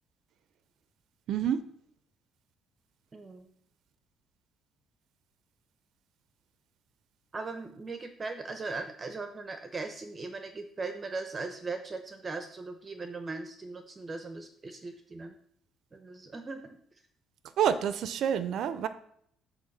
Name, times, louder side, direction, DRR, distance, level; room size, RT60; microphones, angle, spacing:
voice 1, 1.3-1.6 17.6-18.9, right 9 dB, 60° right, 12 dB, 0.5 m, -28 dB
voice 2, 3.1-3.5 7.3-15.3 15.9-16.7 17.7-17.8, right 3 dB, 25° right, 6 dB, 0.7 m, -39 dB
8.8 x 3.1 x 6.5 m, 0.67 s
cardioid pair, 145°, 0 cm